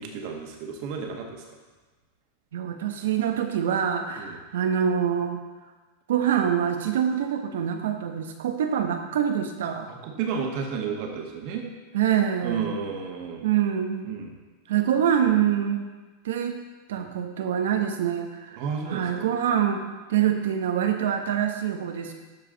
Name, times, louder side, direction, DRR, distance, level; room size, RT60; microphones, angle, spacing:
voice 1, 0.0-1.6 4.2-4.4 10.0-11.6 12.4-13.5 14.0-14.3 16.9-17.1 18.6-19.3, right 6 dB, 55° right, 1 dB, 1.6 m, -32 dB
voice 2, 2.5-5.4 6.1-9.9 11.9-12.7 13.4-14.1 14.7-15.9 16.2-16.6 16.9-18.6 18.9-19.8 20.1-22.1, right 9 dB, 80° right, 5 dB, 1.0 m, -25 dB
12.5 x 4.9 x 4.0 m, 1.3 s
hypercardioid pair, 115°, 0 cm